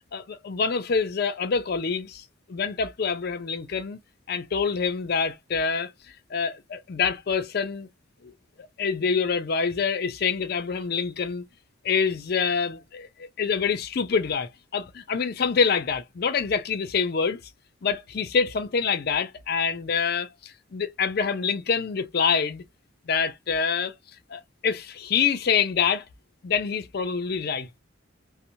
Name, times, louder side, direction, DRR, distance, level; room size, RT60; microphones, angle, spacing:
voice 1, 0.1-2.2 2.5-4.0 4.3-5.9 6.3-7.9 8.8-11.4 11.8-17.4 17.8-22.6 23.1-23.9 24.3-26.0 26.4-27.7, left 5 dB, 50° left, 0.4 m, -26 dB
2.9 x 2.0 x 2.6 m
head